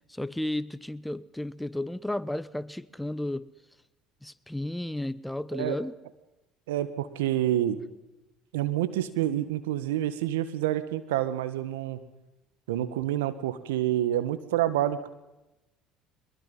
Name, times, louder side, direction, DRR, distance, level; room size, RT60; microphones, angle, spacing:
voice 1, 0.1-3.5 4.2-5.9, left 1 dB, 5° left, 0.9 m, -33 dB
voice 2, 6.7-7.8 8.5-12.0 12.7-15.1, right 12 dB, 85° right, 1.7 m, -28 dB
23.0 x 21.5 x 5.7 m
hypercardioid pair, 75°, 0 cm